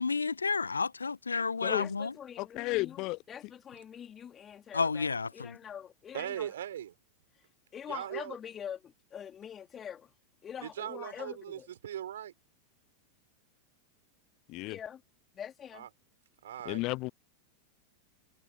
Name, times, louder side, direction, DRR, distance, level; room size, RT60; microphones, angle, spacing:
voice 1, 0.0-2.1 4.7-5.6, left 4 dB, 75° left, 0.9 m, -31 dB
voice 2, 1.8-6.5 7.7-10.1 10.4-11.7 14.6-15.0 15.3-15.9, left 8 dB, 25° left, 3.0 m, -44 dB
voice 3, 2.4-3.2 14.5-14.8 16.7-17.1, left 22 dB, 40° left, 0.3 m, -33 dB
voice 4, 6.1-6.9 7.9-8.4 10.6-12.3 15.7-15.9 16.4-16.8, right 10 dB, 60° right, 4.1 m, -39 dB
figure-of-eight pair, 90°, 0 cm